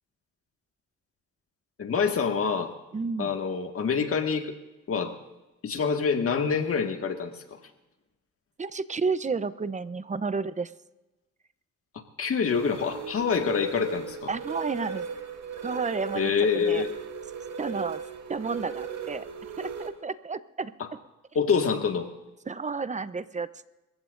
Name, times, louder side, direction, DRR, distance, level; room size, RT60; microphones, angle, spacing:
voice 1, 1.8-2.7 3.2-4.6 4.9-5.2 5.6-7.6 12.2-14.3 16.1-16.9 20.8-20.9 21.4-22.1, left 6 dB, 50° left, 5 dB, 1.9 m, -26 dB
voice 2, 2.9-3.4 8.6-10.7 14.3-15.1 15.6-16.8 17.6-18.0 18.3-19.2 19.6-20.7 22.5-23.7, right 4 dB, 25° right, 14 dB, 0.8 m, -31 dB
sound 1, 12.5-19.9, right 6 dB, 65° right, 2.2 m, -37 dB
29.0 x 15.5 x 2.6 m, 1.1 s
cardioid pair, 90°, 30 cm